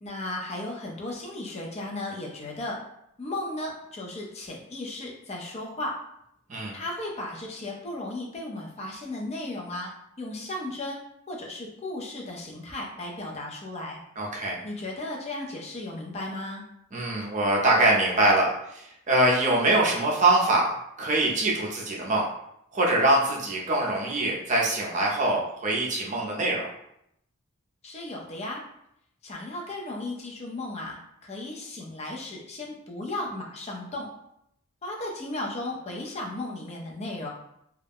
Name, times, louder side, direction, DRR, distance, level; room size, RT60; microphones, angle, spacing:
voice 1, 0.0-2.8 3.2-6.0 6.7-9.9 10.2-11.0 11.3-14.0 14.6-16.6 27.8-28.6 29.2-34.1 34.8-37.3, left 2 dB, 30° left, -1 dB, 0.4 m, -35 dB
voice 2, 14.2-14.6 16.9-20.7 21.0-22.3 22.7-26.7, right 2 dB, 35° right, -2 dB, 0.5 m, -23 dB
2.3 x 2.1 x 3.4 m, 0.77 s
head